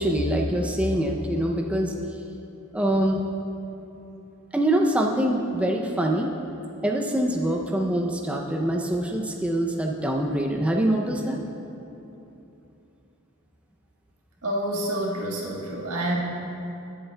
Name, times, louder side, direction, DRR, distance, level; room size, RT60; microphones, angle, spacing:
voice 1, 0.0-1.9 2.7-3.2 4.5-6.3 6.8-11.4, right 1 dB, 5° right, 0 dB, 0.4 m, -24 dB
voice 2, 14.4-16.2, right 1 dB, 90° right, -3 dB, 1.5 m, -28 dB
16.5 x 7.8 x 2.2 m, 2.9 s
head